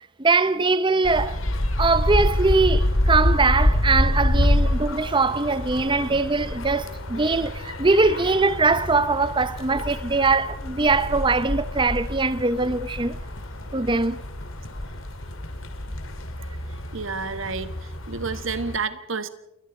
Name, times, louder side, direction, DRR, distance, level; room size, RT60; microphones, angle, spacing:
voice 1, 0.2-1.4 1.8-13.2 13.7-14.2, right 3 dB, 20° right, 0.7 m, -22 dB
sound 1, 1.0-18.8, left 1 dB, 60° left, 2.3 m, -27 dB
voice 2, 16.9-17.7 18.1-19.3, right 4 dB, 60° right, 1.4 m, -29 dB
28.5 x 21.0 x 4.4 m
head